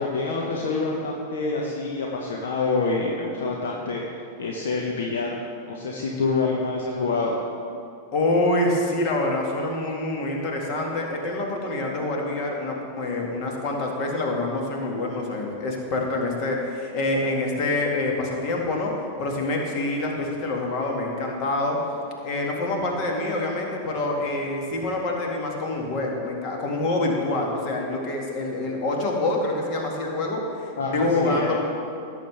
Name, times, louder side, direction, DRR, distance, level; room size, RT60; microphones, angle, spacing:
voice 1, 0.0-4.0 4.4-5.3 5.7-7.3 30.8-31.6, left 3 dB, 60° left, 0 dB, 0.9 m, -26 dB
voice 2, 8.1-18.9 19.2-21.8 22.2-31.6, left 2 dB, 40° left, 0 dB, 2.0 m, -26 dB
16.5 x 7.4 x 3.4 m, 2.6 s
figure-of-eight pair, 90°, 0 cm